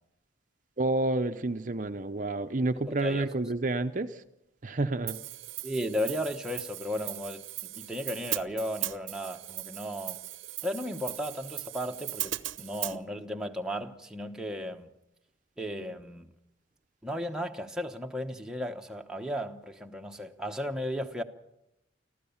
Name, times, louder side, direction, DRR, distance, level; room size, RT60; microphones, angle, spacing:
voice 1, 0.8-4.2 4.6-5.2, right 2 dB, 40° right, 0.7 m, -29 dB
voice 2, 2.9-3.3 5.6-10.2 10.6-14.9 15.6-16.3 17.0-21.2, equal, 5° right, 1.0 m, -35 dB
Hi-hat, 5.1-13.0, right 15 dB, 80° right, 0.8 m, -38 dB
26.0 x 15.0 x 7.2 m
head